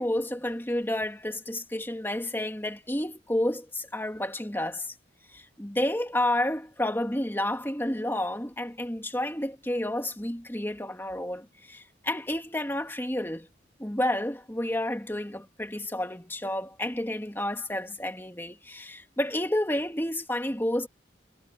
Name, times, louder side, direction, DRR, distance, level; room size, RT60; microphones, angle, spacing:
voice 1, 0.0-4.9 5.3-13.5 13.8-20.9, left 1 dB, 10° left, 2.2 m, -30 dB
head